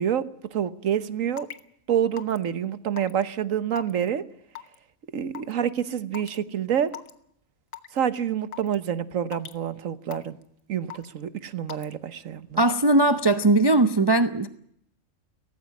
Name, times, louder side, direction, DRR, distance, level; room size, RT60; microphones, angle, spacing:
voice 1, 0.0-1.5 1.9-4.2 5.1-6.9 7.9-10.4 10.7-12.6, right 9 dB, 75° right, 1.5 m, -27 dB
Raindrop / Water tap faucet / Drip, 1.4-1.6 2.2-2.4 3.0-3.2 3.8-4.1 4.6-4.8 5.3-5.5 6.1-6.4 6.9-7.1 7.7-8.0 8.5-8.8 9.3-9.6 10.1-10.4 10.9-11.2 11.7-11.9, left 10 dB, 75° left, 1.5 m, -39 dB
voice 2, 12.6-14.5, right 2 dB, 25° right, 0.6 m, -19 dB
17.5 x 15.5 x 9.7 m
omnidirectional pair, 1.4 m